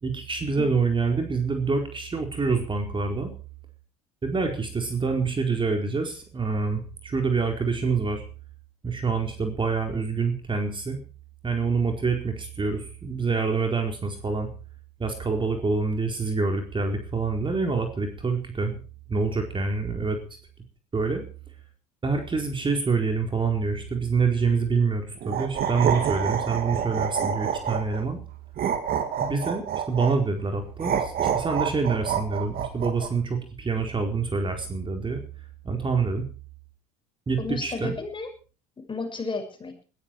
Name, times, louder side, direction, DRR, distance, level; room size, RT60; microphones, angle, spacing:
voice 1, 0.0-3.3 4.2-8.2 8.8-11.0 11.4-14.5 15.0-18.8 19.1-20.2 20.9-21.2 22.0-28.2 29.2-35.2 35.6-36.3 37.3-37.9, right 4 dB, 25° right, 4 dB, 4.5 m, -26 dB
sound 1, 25.2-28.0 28.6-30.2 30.8-33.1, right 8 dB, 50° right, 2.7 m, -27 dB
voice 2, 37.4-38.3 38.8-39.8, left 3 dB, 25° left, 5 dB, 6.3 m, -33 dB
20.5 x 13.5 x 4.8 m, 0.37 s
hypercardioid pair, 65°, 19 cm